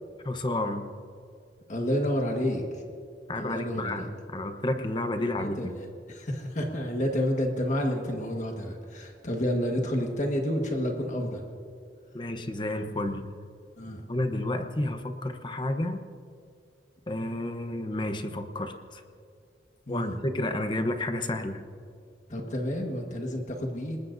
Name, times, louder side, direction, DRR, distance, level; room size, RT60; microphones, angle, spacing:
voice 1, 0.2-0.9 3.3-5.8 12.1-13.3 14.1-16.0 17.1-19.0 19.9-21.6, left 1 dB, 25° left, 7 dB, 0.9 m, -31 dB
voice 2, 1.7-2.8 3.3-4.1 5.4-11.4 13.8-14.0 19.9-20.2 22.3-24.0, equal, 45° left, 2 dB, 1.5 m, -30 dB
27.0 x 20.0 x 2.7 m, 2.3 s
head